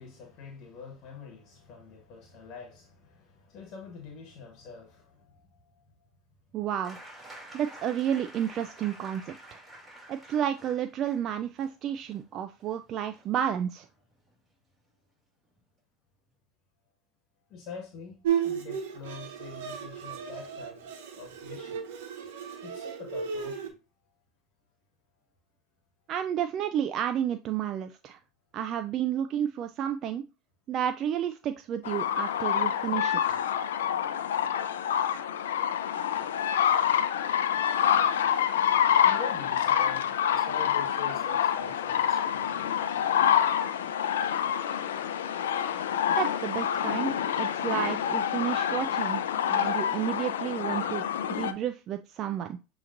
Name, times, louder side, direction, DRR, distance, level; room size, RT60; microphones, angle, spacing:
voice 1, 0.0-6.1 17.5-21.8 22.6-23.8 24.0-24.1 39.0-43.0, left 5 dB, 55° left, 1.2 m, -45 dB
voice 2, 6.5-7.0 7.5-9.6 10.1-13.9 26.1-28.2 28.5-30.2 30.7-33.4 46.2-52.6, right 9 dB, 45° right, 0.3 m, -31 dB
sound 1, 6.8-14.4 15.6-15.7, right 1 dB, 10° right, 2.6 m, -49 dB
Bowed string instrument, 18.2-23.7, right 8 dB, 75° right, 1.1 m, -34 dB
sound 2, 31.8-51.5, left 9 dB, 90° left, 0.4 m, -27 dB
7.0 x 2.9 x 2.6 m
hypercardioid pair, 100°, 0 cm